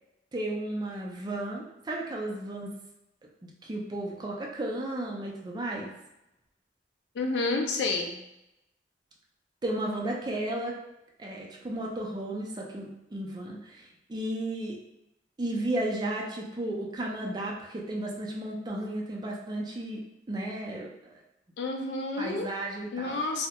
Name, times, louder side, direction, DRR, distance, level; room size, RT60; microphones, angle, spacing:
voice 1, 0.3-2.7 3.4-5.9 9.6-10.7 11.2-14.8 15.4-20.0 20.3-20.9 22.2-23.2, right 1 dB, 25° right, -1 dB, 0.4 m, -34 dB
voice 2, 7.1-8.2 21.6-22.5 22.9-23.5, left 3 dB, 70° left, 3 dB, 0.4 m, -30 dB
2.2 x 2.1 x 2.8 m, 0.88 s
head